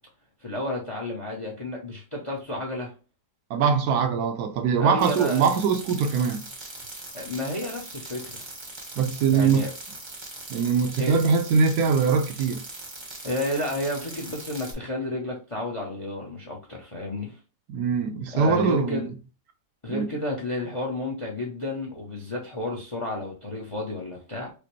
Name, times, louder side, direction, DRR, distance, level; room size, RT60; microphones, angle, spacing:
voice 1, 0.4-2.9 4.8-5.5 7.1-8.4 9.3-9.7 11.0-11.2 13.2-17.4 18.3-19.1 19.8-24.5, left 2 dB, 35° left, 0.5 m, -31 dB
voice 2, 3.5-6.4 9.0-9.7 10.5-12.6 17.7-19.0 19.9-20.1, right 6 dB, 70° right, 1.0 m, -22 dB
sound 1, 5.0-14.7, right 2 dB, 30° right, 0.5 m, -40 dB
4.9 x 2.0 x 3.0 m
omnidirectional pair, 1.7 m